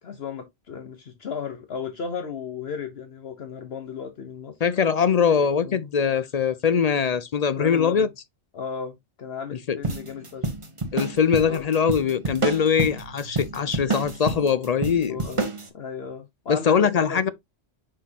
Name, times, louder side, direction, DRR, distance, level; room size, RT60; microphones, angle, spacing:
voice 1, 0.0-4.6 5.6-5.9 7.4-8.1 8.5-10.5 11.4-11.6 15.0-17.2, left 6 dB, 65° left, 1.2 m, -35 dB
voice 2, 4.6-8.1 9.7-9.8 10.9-15.2 16.5-17.3, left 7 dB, 50° left, 0.5 m, -22 dB
sound 1, 9.8-15.7, right 3 dB, 30° right, 1.1 m, -29 dB
6.1 x 5.7 x 2.8 m
omnidirectional pair, 1.1 m